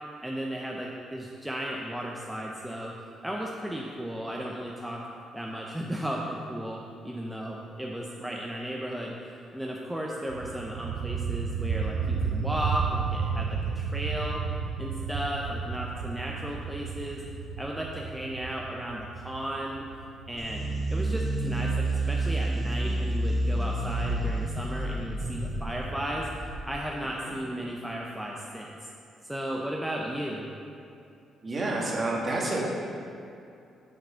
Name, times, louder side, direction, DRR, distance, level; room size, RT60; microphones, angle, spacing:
voice 1, 0.2-2.9 3.2-5.1 5.3-9.2 9.5-14.4 14.8-17.2 17.6-19.8 20.3-26.3 26.6-28.9 29.3-30.5, equal, 5° right, -2 dB, 0.7 m, -35 dB
sound 1, 10.3-21.9, right 6 dB, 85° right, 0.3 m, -33 dB
sound 2, 20.4-26.9, right 1 dB, 15° left, 1.6 m, -29 dB
voice 2, 31.4-32.6, right 2 dB, 35° right, -2 dB, 1.7 m, -29 dB
7.6 x 4.8 x 5.7 m, 2.6 s
cardioid pair, 90°, 0 cm